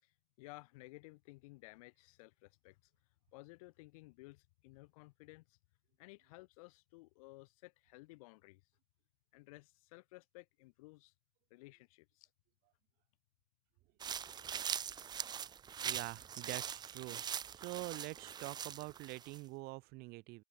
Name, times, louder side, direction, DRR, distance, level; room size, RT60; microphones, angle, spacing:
voice 1, 0.0-2.9 3.3-5.6 6.0-8.6 9.3-11.1 11.5-12.3, left 23 dB, 70° left, 7.7 m, -56 dB
sound 1, 14.0-19.4, right 8 dB, 25° right, 0.4 m, -42 dB
voice 2, 15.8-20.4, right 23 dB, 60° right, 3.0 m, -45 dB
open air
hypercardioid pair, 85°, 19 cm